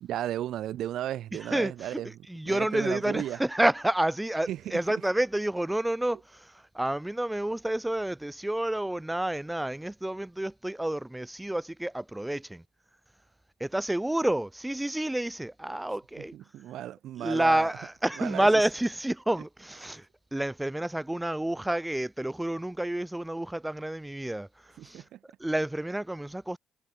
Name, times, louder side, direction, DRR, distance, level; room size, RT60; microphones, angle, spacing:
voice 1, 0.0-2.1 2.4-3.4 4.5-4.6 16.2-17.7 18.2-18.5 24.8-25.2, right 12 dB, 80° right, 1.0 m, -34 dB
voice 2, 1.4-12.6 13.6-16.3 17.2-26.6, right 1 dB, 10° right, 1.5 m, -29 dB
cardioid pair, 90°, 0 cm